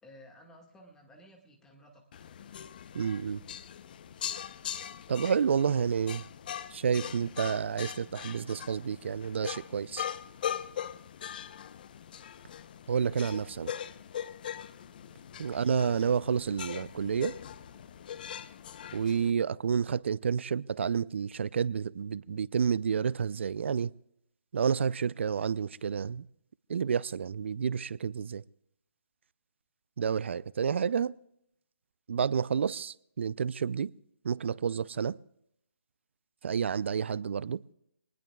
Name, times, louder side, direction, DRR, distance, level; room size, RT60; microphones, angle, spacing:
voice 1, 0.0-2.3 15.3-15.7, equal, 5° left, 1.8 m, -56 dB
sound 1, 2.1-19.3, left 9 dB, 40° left, 0.7 m, -41 dB
voice 2, 2.9-3.4 5.1-6.2 6.7-10.1 12.9-13.7 15.4-17.3 18.9-23.9 24.5-26.2 26.7-28.4 30.0-31.2 32.1-33.9 34.2-35.2 36.4-37.6, right 7 dB, 60° right, 0.5 m, -30 dB
26.0 x 19.5 x 2.3 m
hypercardioid pair, 155°, 7 cm